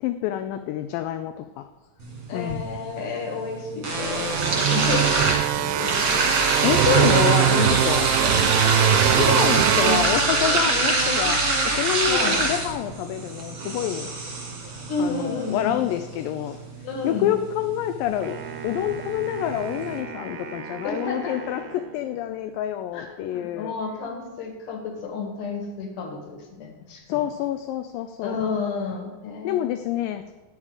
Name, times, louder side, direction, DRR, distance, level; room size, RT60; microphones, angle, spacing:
voice 1, 0.0-1.7 2.3-2.7 6.6-8.1 9.1-11.4 11.7-14.1 14.6-14.7 15.0-16.6 17.0-18.4 18.6-23.7 27.1-28.4 29.4-30.3, left 12 dB, 85° left, 8 dB, 2.2 m, -27 dB
sound 1, 2.0-20.0, right 2 dB, 40° right, 2.2 m, -26 dB
voice 2, 2.3-5.3 5.6-6.3 8.2-8.5 12.1-12.5 14.9-15.8 16.8-17.3 20.8-21.4 22.9-27.3 28.2-29.7, left 4 dB, 65° left, 2 dB, 3.1 m, -31 dB
sound 2, 4.2-10.9, right 12 dB, 85° right, 2.3 m, -22 dB
Wind instrument woodwind instrument, 18.2-22.4, right 7 dB, 70° right, 1.9 m, -38 dB
11.5 x 7.5 x 4.8 m, 1.2 s
omnidirectional pair, 4.0 m